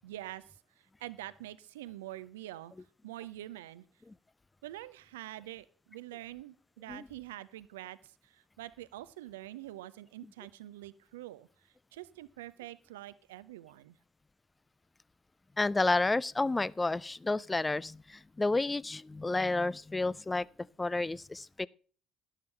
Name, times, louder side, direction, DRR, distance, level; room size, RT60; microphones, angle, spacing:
voice 1, 0.0-2.7 3.0-3.9 4.6-11.5 11.9-14.0, right 15 dB, 75° right, 0.5 m, -46 dB
voice 2, 15.6-21.7, left 2 dB, 20° left, 0.4 m, -31 dB
12.0 x 11.5 x 3.3 m
figure-of-eight pair, 50°, 0 cm